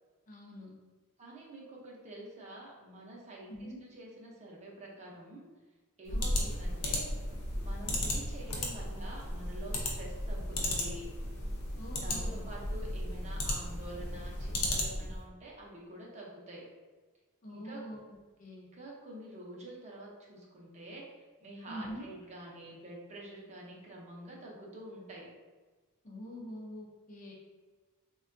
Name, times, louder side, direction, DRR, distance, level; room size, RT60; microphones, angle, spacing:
voice 1, 0.3-0.8 3.5-3.8 6.1-6.6 11.8-12.5 17.4-18.0 18.4-18.7 21.7-22.1 26.0-27.3, equal, 35° left, -2 dB, 0.5 m, -45 dB
voice 2, 1.2-5.4 6.0-7.1 7.6-11.1 12.0-16.6 17.5-17.8 18.7-25.3, right 1 dB, 30° right, -3 dB, 0.6 m, -47 dB
sound 1, 6.1-15.2, left 1 dB, 85° left, 0.6 m, -35 dB
3.5 x 2.2 x 2.5 m, 1.4 s
head